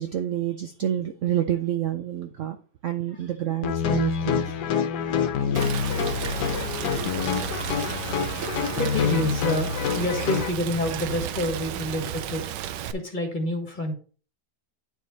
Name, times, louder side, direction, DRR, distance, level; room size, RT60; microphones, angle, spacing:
voice 1, 0.0-2.6 2.8-4.5 6.8-7.0 8.4-8.5 10.2-10.3 10.9-11.0, right 11 dB, 65° right, 7 dB, 0.8 m, -29 dB
sound 1, 3.6-10.5, left 7 dB, 75° left, 1.4 m, -26 dB
Rain, 5.5-12.9, right 11 dB, 90° right, 1.3 m, -33 dB
voice 2, 8.6-13.9, left 1 dB, 30° left, 3 dB, 1.6 m, -28 dB
9.4 x 4.6 x 4.0 m, 0.39 s
omnidirectional pair, 1.8 m